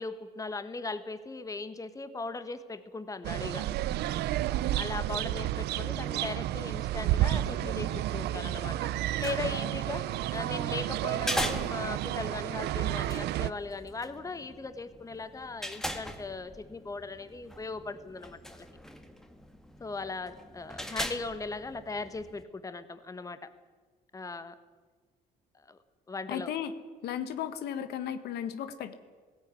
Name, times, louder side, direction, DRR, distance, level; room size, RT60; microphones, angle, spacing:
voice 1, 0.0-3.7 4.7-8.9 9.2-18.7 19.8-23.5 24.1-24.6 25.5-25.8 26.1-26.5, left 3 dB, 20° left, 11 dB, 1.3 m, -38 dB
sound 1, 3.2-13.5, right 14 dB, 75° right, 0.7 m, -31 dB
sound 2, 9.0-22.4, equal, 5° left, 1.8 m, -41 dB
voice 2, 26.3-26.7 27.0-28.9, left 9 dB, 75° left, 10 dB, 1.4 m, -35 dB
17.0 x 16.5 x 9.7 m, 1.4 s
cardioid pair, 110°, 17 cm